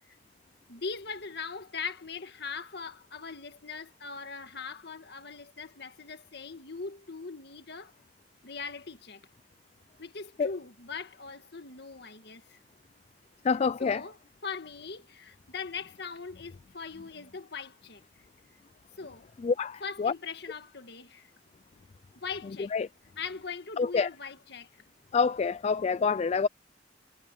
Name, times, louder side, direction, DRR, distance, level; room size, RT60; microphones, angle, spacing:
voice 1, 0.7-7.9 8.4-9.2 10.0-12.6 13.8-14.2 14.4-18.0 19.0-19.3 19.8-21.3 22.2-22.7 23.2-24.7, left 5 dB, 65° left, 1.8 m, -40 dB
voice 2, 13.4-14.0 19.4-20.1 22.7-22.9 23.8-24.1 25.1-26.5, left 5 dB, 35° left, 0.3 m, -27 dB
head